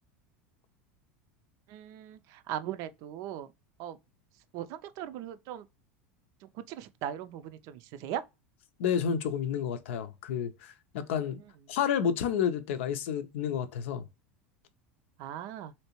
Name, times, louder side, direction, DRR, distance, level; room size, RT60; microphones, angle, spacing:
voice 1, 1.7-3.5 3.8-4.0 4.5-5.7 6.5-8.2 15.2-15.7, right 11 dB, 55° right, 0.4 m, -39 dB
voice 2, 8.8-11.4 11.7-14.0, left 8 dB, 70° left, 0.5 m, -30 dB
3.2 x 2.8 x 2.9 m
hypercardioid pair, 90°, 7 cm